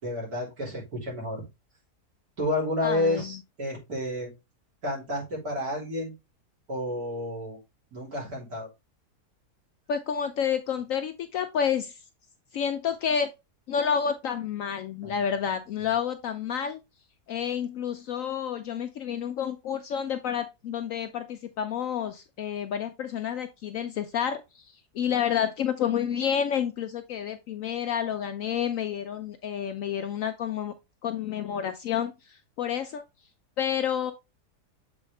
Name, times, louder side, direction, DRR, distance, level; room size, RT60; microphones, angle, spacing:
voice 1, 0.0-1.4 2.4-4.3 4.8-6.1 6.7-7.6 7.9-8.7 15.0-15.2 15.8-15.9, left 1 dB, 65° right, 3.7 m, -30 dB
voice 2, 2.8-3.4 9.9-12.0 12.5-13.3 13.7-16.8 17.3-30.7 31.0-33.0 33.6-34.1, left 8 dB, 70° left, 0.8 m, -29 dB
7.2 x 4.1 x 3.2 m
omnidirectional pair, 1.7 m